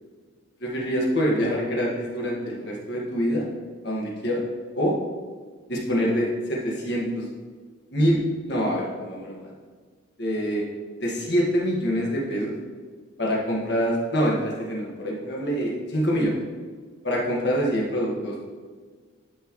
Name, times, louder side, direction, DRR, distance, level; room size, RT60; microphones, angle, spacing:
voice 1, 0.6-3.4 3.8-4.5 4.8-5.0 5.7-7.3 7.9-9.5 10.2-10.6 11.0-12.6 13.2-16.4 17.0-18.4, equal, 55° left, -3 dB, 1.8 m, -25 dB
11.0 x 6.2 x 3.2 m, 1.5 s
head